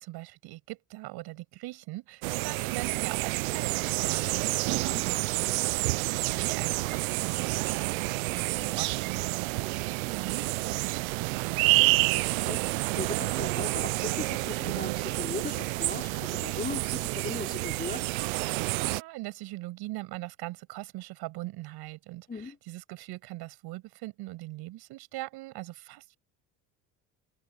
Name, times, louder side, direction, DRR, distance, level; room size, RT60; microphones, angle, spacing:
voice 1, 0.0-11.8 18.8-26.2, right 19 dB, 70° right, 7.1 m, -41 dB
sound 1, 2.2-19.0, right 24 dB, 90° right, 0.6 m, -29 dB
voice 2, 4.7-5.0 8.2-8.9 12.1-18.1 22.3-22.6, left 4 dB, 20° left, 5.1 m, -39 dB
supercardioid pair, 80°, 40 cm